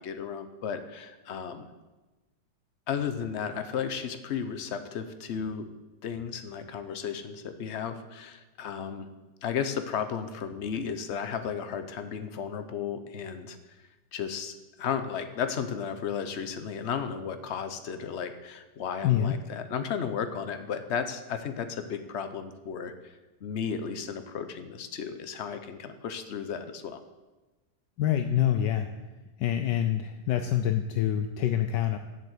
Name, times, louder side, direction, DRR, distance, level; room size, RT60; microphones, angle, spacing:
voice 1, 0.0-1.7 2.9-5.7 6.0-9.1 9.4-13.6 14.1-23.1 23.4-27.0, left 7 dB, 60° left, 9 dB, 0.7 m, -34 dB
voice 2, 19.0-19.4 28.0-28.9 29.4-32.0, left 11 dB, 75° left, 7 dB, 1.2 m, -26 dB
7.6 x 7.6 x 8.1 m, 1.2 s
omnidirectional pair, 2.0 m